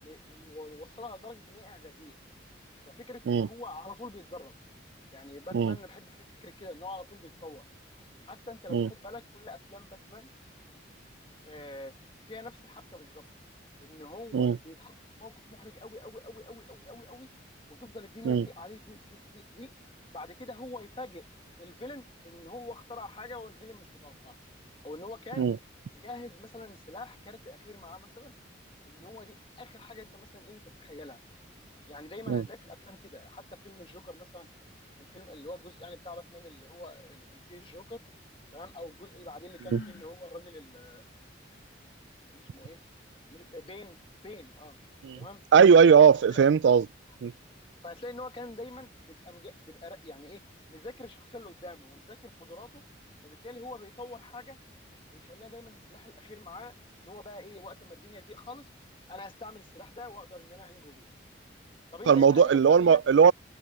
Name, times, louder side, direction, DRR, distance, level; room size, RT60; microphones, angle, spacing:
voice 1, 0.0-2.2 2.9-4.5 5.1-7.6 8.3-10.3 11.5-11.9 12.3-13.2 13.8-17.3 17.7-19.7 20.1-21.3 21.6-24.3 24.8-25.5 25.9-28.3 28.9-31.2 31.9-34.5 35.1-38.0 38.5-41.0 42.3-42.8 43.3-44.8 45.2-45.4 45.9-46.4 47.8-50.4 50.7-52.8 53.2-54.6 55.1-58.7 59.1-61.1 61.9-63.0, left 2 dB, 25° left, 1.8 m, -46 dB
Sigh, 39.5-40.2, left 2 dB, 65° left, 2.7 m, -45 dB
voice 2, 45.5-46.9 47.2-47.3 62.1-63.3, right 6 dB, 70° right, 0.3 m, -19 dB
head